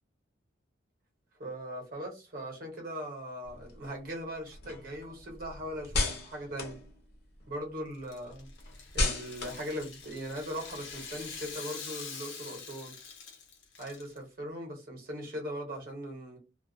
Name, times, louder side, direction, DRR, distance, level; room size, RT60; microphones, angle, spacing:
voice 1, 1.4-6.8 7.5-8.5 8.9-12.9 13.8-16.4, equal, 50° right, 0.9 m, -39 dB
sound 1, 3.4-7.6 8.0-11.5, left 2 dB, 55° left, 0.7 m, -36 dB
Rattle (instrument), 7.9-14.2, left 5 dB, 90° left, 0.8 m, -45 dB
2.3 x 2.1 x 2.6 m
head